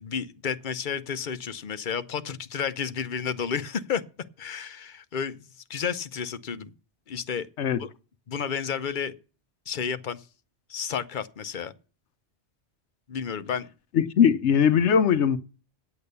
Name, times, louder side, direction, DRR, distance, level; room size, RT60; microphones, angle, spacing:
voice 1, 0.0-4.0 4.4-6.7 7.1-7.5 7.8-7.9 8.3-9.1 9.7-10.2 10.7-11.7 13.1-13.7, left 7 dB, 50° left, 0.9 m, -31 dB
voice 2, 13.9-15.4, left 7 dB, 80° left, 1.0 m, -20 dB
9.4 x 8.6 x 6.8 m
omnidirectional pair, 1.2 m